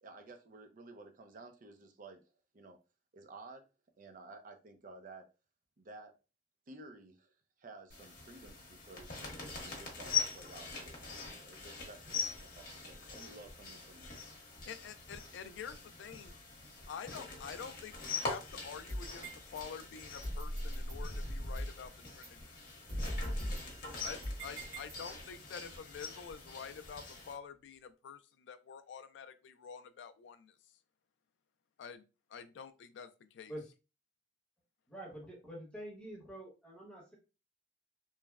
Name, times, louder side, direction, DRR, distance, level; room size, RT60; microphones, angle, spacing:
voice 1, 0.0-2.2 2.5-2.8 3.1-3.6 4.0-5.2 5.8-6.1 6.7-9.2 9.6-14.2, right 2 dB, 50° right, 6 dB, 0.5 m, -53 dB
sound 1, 7.9-27.3, left 5 dB, 50° left, 0.9 m, -43 dB
voice 2, 14.6-16.4 16.9-19.3 19.5-22.5 24.0-30.5 31.8-32.0 32.3-33.5, left 7 dB, 80° left, 10 dB, 0.3 m, -48 dB
sound 2, 18.7-19.6 20.2-21.8 22.2-22.3 22.9-25.4, equal, 85° right, 1.1 m, -39 dB
voice 3, 34.9-37.1, right 1 dB, 5° left, -3 dB, 0.9 m, -46 dB
3.0 x 2.1 x 2.3 m, 0.31 s
head